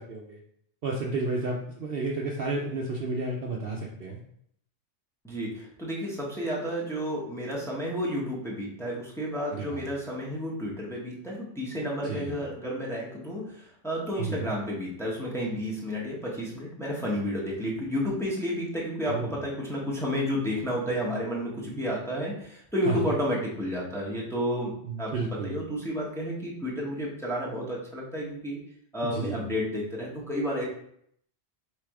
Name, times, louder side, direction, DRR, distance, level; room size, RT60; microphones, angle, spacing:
voice 1, 0.1-0.4 0.8-4.2 9.5-9.8 12.0-12.4 14.2-14.5 19.1-19.3 22.9-23.2 24.8-25.6 29.0-29.4, right 3 dB, 55° right, -1 dB, 0.8 m, -32 dB
voice 2, 5.2-24.7 25.0-28.6 28.9-30.6, equal, ahead, -4 dB, 0.9 m, -31 dB
3.3 x 3.2 x 4.7 m, 0.68 s
omnidirectional pair, 1.3 m